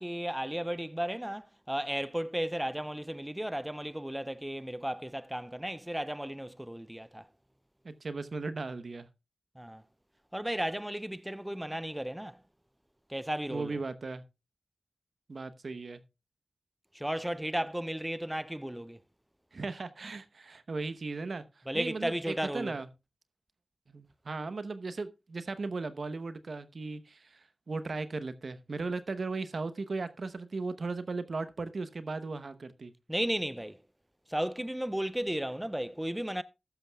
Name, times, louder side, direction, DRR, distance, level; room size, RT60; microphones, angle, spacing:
voice 1, 0.0-7.3 9.6-9.8 10.3-12.4 13.1-13.8 16.9-19.0 21.7-22.7 33.1-33.8 34.3-36.4, right 1 dB, 10° right, 0.5 m, -34 dB
voice 2, 7.8-9.1 13.5-14.2 15.3-16.0 19.5-21.4 21.7-22.9 23.9-32.9, right 3 dB, 65° right, 0.9 m, -37 dB
13.5 x 11.5 x 2.3 m
cardioid pair, 40°, 0 cm